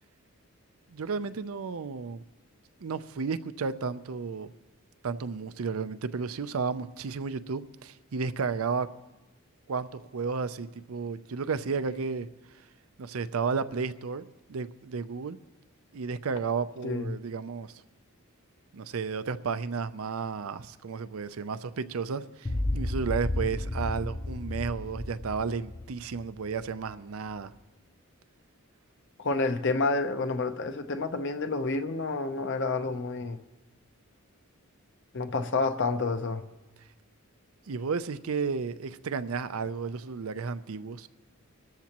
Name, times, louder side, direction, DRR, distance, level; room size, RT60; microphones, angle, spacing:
voice 1, 0.9-2.2 2.8-4.5 5.0-8.9 9.7-12.3 13.0-15.4 15.9-17.7 18.7-27.5 37.7-41.1, right 5 dB, 70° right, 0.5 m, -33 dB
voice 2, 16.8-17.2 29.2-33.4 35.1-36.4, left 3 dB, 55° left, 0.8 m, -29 dB
sound 1, 22.4-26.8, left 1 dB, 20° left, 0.6 m, -32 dB
25.5 x 13.5 x 3.0 m
head